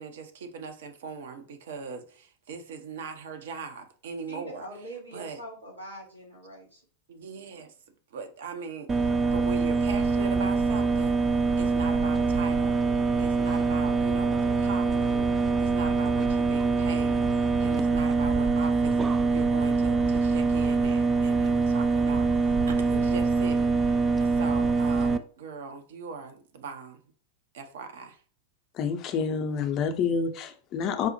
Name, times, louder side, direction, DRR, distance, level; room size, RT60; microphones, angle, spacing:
voice 1, 0.0-4.7 5.1-5.4 7.1-7.7 8.1-11.1 11.6-12.8 13.2-27.0 27.5-28.2, right 5 dB, 60° right, 0.6 m, -40 dB
voice 2, 4.3-6.8, right 1 dB, 85° right, 1.6 m, -43 dB
sound 1, 8.9-25.2, right 4 dB, 20° right, 0.3 m, -24 dB
voice 3, 28.8-31.1, left 6 dB, 35° left, 0.5 m, -28 dB
4.7 x 2.0 x 2.9 m
figure-of-eight pair, 90°, 0 cm